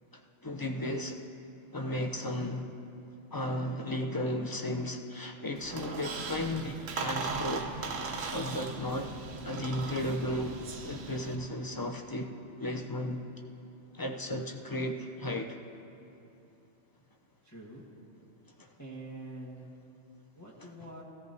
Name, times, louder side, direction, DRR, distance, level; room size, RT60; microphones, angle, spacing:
voice 1, 0.1-1.2 1.7-2.7 3.3-7.7 8.0-9.1 9.4-10.6 10.9-12.3 12.6-13.2 13.9-15.6 18.6-18.7, left 1 dB, 35° left, 3 dB, 0.3 m, -34 dB
Squeak, 5.6-11.4, right 4 dB, 90° right, 1.3 m, -38 dB
Gong, 10.6-13.7, right 5 dB, 65° right, 1.0 m, -56 dB
voice 2, 17.4-17.9 18.8-19.7 20.3-21.0, right 2 dB, 15° left, -6 dB, 1.4 m, -45 dB
17.0 x 15.5 x 2.7 m, 2.8 s
omnidirectional pair, 1.3 m